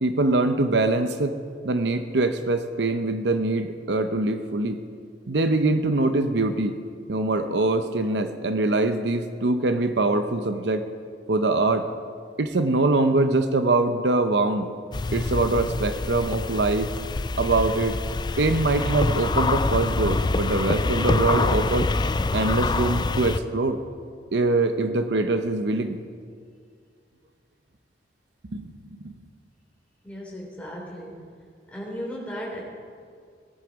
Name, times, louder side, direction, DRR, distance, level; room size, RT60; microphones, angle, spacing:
voice 1, 0.0-1.3 1.6-4.8 5.3-6.8 7.1-10.8 11.3-11.8 12.4-14.7 15.1-16.9 17.4-18.0 18.4-21.9 22.3-23.8 24.3-26.0 28.5-28.7 29.0-29.1, right 2 dB, 70° right, 9 dB, 0.8 m, -23 dB
sound 1, 14.9-23.4, left 3 dB, 25° left, 0.4 m, -25 dB
voice 2, 30.0-31.2 31.7-32.6, equal, 10° left, -3 dB, 3.3 m, -35 dB
17.5 x 11.0 x 5.1 m, 2.1 s
head